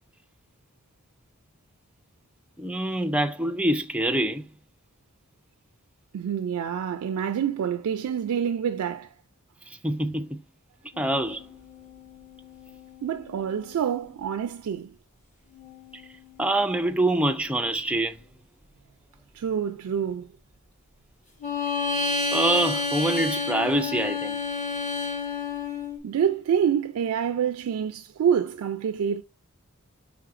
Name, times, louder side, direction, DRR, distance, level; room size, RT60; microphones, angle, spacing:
voice 1, 2.6-4.5 9.8-10.4 11.0-11.4 16.4-18.2 22.3-24.4, right 1 dB, 5° right, 0.4 m, -25 dB
voice 2, 6.1-9.1 13.0-14.9 19.3-20.3 26.0-29.2, right 8 dB, 85° right, 0.3 m, -27 dB
sound 1, 10.9-14.1 15.5-17.9 21.4-26.0, left 3 dB, 35° left, 1.2 m, -32 dB
5.8 x 3.4 x 2.5 m
head